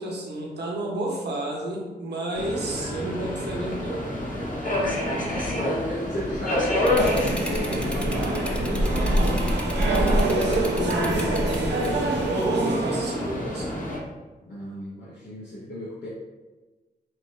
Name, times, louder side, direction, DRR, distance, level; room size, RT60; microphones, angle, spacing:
voice 1, 0.0-4.1 9.8-11.2 12.1-13.7, right 1 dB, 75° right, -2 dB, 0.9 m, -32 dB
Subway metro underground, 2.3-14.0, left 1 dB, 50° left, 1.3 m, -29 dB
voice 2, 4.7-9.1 14.4-16.1, equal, 80° left, -7 dB, 0.9 m, -34 dB
sound 1, 6.8-12.2, equal, 5° left, 0.6 m, -28 dB
sound 2, 7.0-13.4, right 2 dB, 90° right, 0.6 m, -26 dB
5.6 x 2.2 x 3.2 m, 1.2 s
cardioid pair, 45°, 18 cm